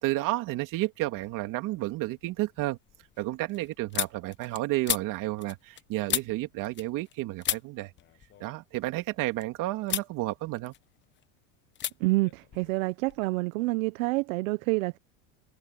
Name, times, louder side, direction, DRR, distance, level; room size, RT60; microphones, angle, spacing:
voice 1, 0.0-2.8 3.2-7.9 8.4-10.7, right 18 dB, 50° right, 2.9 m, -31 dB
sound 1, 1.2-1.7 2.1-7.1 7.4-9.4 9.8-10.1 10.5-11.2 11.7-11.9 12.2-13.3, left 11 dB, 25° left, 0.9 m, -36 dB
voice 2, 12.0-15.0, right 22 dB, 65° right, 0.9 m, -28 dB
supercardioid pair, 130°, 42 cm